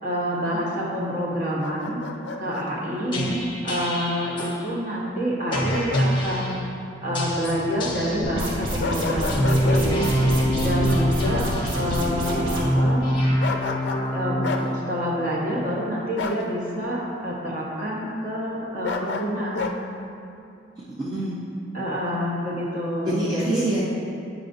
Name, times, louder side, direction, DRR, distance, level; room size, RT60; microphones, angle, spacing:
voice 1, 0.0-2.0 2.4-3.2 3.6-6.6 7.0-10.1 10.6-11.5 11.7-13.0 14.1-19.7 21.7-23.6, equal, 40° right, -5 dB, 1.2 m, -27 dB
Bark, 1.6-2.7 5.5-6.1 6.5-6.6 8.8-9.9 13.4-14.1 14.4-14.7 16.2-16.4 18.8-19.8, left 3 dB, 55° left, 0.4 m, -30 dB
sound 1, 3.1-4.6 5.5-6.6 7.1-8.3 9.2-14.8, equal, 25° left, 0.8 m, -25 dB
voice 2, 3.1-3.4 20.8-21.4 23.0-23.8, right 1 dB, 20° right, -8 dB, 0.6 m, -27 dB
sound 2, 8.2-12.6, equal, 80° right, 1.4 m, -28 dB
9.0 x 4.8 x 2.6 m, 2.6 s
head